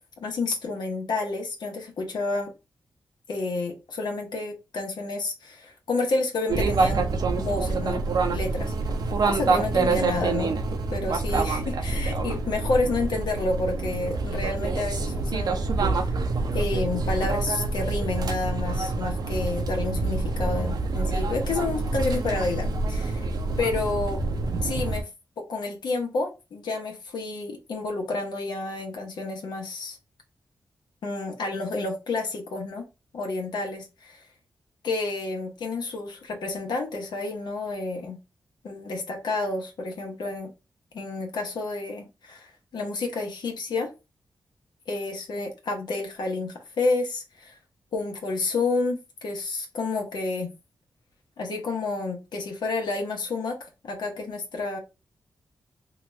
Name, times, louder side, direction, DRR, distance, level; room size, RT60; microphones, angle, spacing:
voice 1, 0.2-2.5 3.3-7.1 7.4-8.0 8.3-9.0 9.3-10.5 10.9-15.6 16.0-16.2 16.5-23.3 23.6-24.2 24.6-25.1 25.4-30.0 31.0-32.8 33.1-34.2 34.8-38.2 38.6-40.5 40.9-43.9 44.9-47.5 47.9-50.5 51.4-54.8, left 3 dB, 80° left, 0.9 m, -30 dB
sound 1, 6.5-25.0, right 3 dB, 65° right, 0.6 m, -26 dB
2.9 x 2.3 x 3.0 m
cardioid pair, 80°, 7 cm